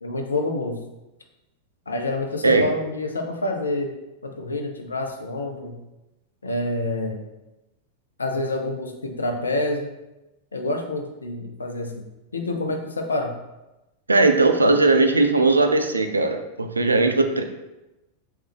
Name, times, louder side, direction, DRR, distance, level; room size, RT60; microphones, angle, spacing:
voice 1, 0.0-0.8 1.9-4.0 4.2-5.8 6.4-7.3 8.2-9.9 10.5-12.0 12.3-13.4, left 2 dB, 75° left, 3 dB, 0.5 m, -27 dB
voice 2, 14.1-17.4, right 3 dB, 80° right, 6 dB, 0.3 m, -18 dB
3.2 x 3.2 x 3.3 m, 0.98 s
figure-of-eight pair, 90°, 0 cm